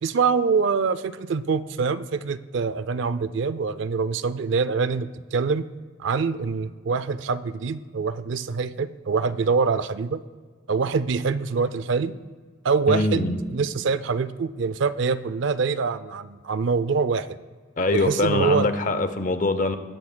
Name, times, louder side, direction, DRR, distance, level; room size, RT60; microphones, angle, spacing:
voice 1, 0.0-5.7 6.0-10.2 10.7-12.2 12.6-17.4 17.9-18.7, right 5 dB, 65° right, 15 dB, 0.4 m, -25 dB
voice 2, 12.9-13.4 17.8-19.8, left 2 dB, 40° left, 10 dB, 0.7 m, -23 dB
19.5 x 8.3 x 2.2 m, 1.5 s
head